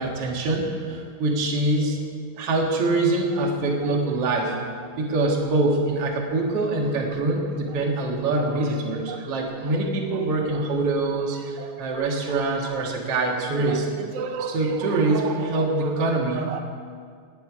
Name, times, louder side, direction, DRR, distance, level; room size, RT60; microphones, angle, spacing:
voice 1, 0.0-2.0 2.4-4.6 5.0-13.9 14.5-16.5, right 2 dB, 50° right, -1 dB, 2.3 m, -24 dB
voice 2, 9.1-9.7 10.1-10.2 10.5-10.6 11.6-12.4 13.6-15.5 15.8-16.0 16.3-16.6, right 6 dB, 85° right, 5 dB, 2.8 m, -34 dB
19.0 x 9.6 x 4.9 m, 2.1 s
omnidirectional pair, 4.1 m